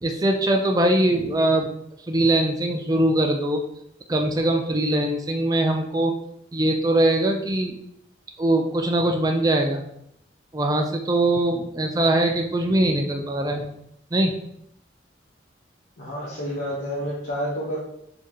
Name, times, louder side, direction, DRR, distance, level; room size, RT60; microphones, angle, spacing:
voice 1, 0.0-1.8 2.1-3.6 4.1-6.1 6.5-7.8 8.4-9.8 10.5-13.7 14.1-14.3, right 1 dB, 20° right, 3 dB, 0.4 m, -22 dB
voice 2, 16.0-17.8, equal, 80° left, -8 dB, 1.0 m, -29 dB
4.3 x 2.8 x 3.1 m, 0.75 s
head